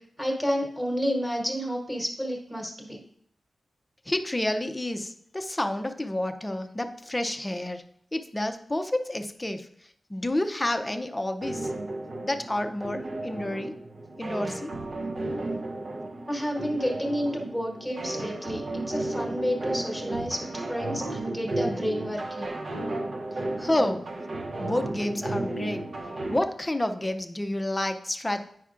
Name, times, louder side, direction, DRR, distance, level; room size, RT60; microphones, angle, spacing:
voice 1, 0.2-3.0 16.3-22.5, equal, 5° right, -1 dB, 1.2 m, -30 dB
voice 2, 4.1-7.8 8.1-9.7 10.1-11.7 12.2-13.8 14.2-14.7 23.6-24.0 24.6-25.9 26.3-28.5, left 1 dB, 15° left, 7 dB, 0.5 m, -29 dB
sound 1, 11.4-26.4, right 2 dB, 50° right, 0.6 m, -33 dB
9.0 x 5.8 x 2.4 m, 0.64 s
wide cardioid pair, 175°, 0 cm